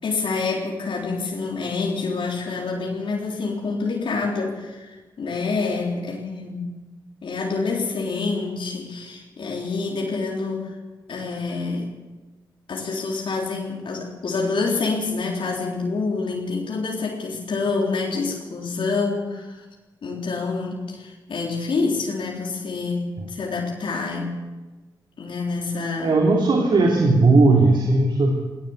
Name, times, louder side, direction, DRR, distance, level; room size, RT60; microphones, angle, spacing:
voice 1, 0.0-6.7 7.2-10.7 11.1-11.9 12.7-19.6 20.0-24.3 25.2-26.2, left 4 dB, 75° left, -1 dB, 3.9 m, -27 dB
voice 2, 26.0-28.5, right 3 dB, 65° right, 1 dB, 3.1 m, -17 dB
19.0 x 18.0 x 8.1 m, 1.2 s
cardioid pair, 65°, 9 cm